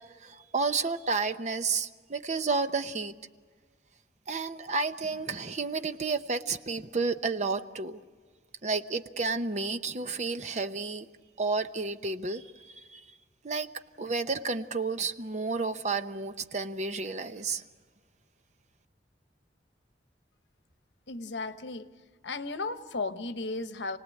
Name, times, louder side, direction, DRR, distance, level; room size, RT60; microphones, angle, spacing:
voice 1, 0.2-3.1 4.3-8.0 8.6-11.1 11.4-13.0 13.4-13.7 14.0-17.6, right 4 dB, 40° right, 10 dB, 0.8 m, -31 dB
voice 2, 21.1-21.9 22.2-24.0, left 3 dB, 85° left, 11 dB, 1.0 m, -35 dB
28.5 x 18.5 x 8.3 m, 1.5 s
head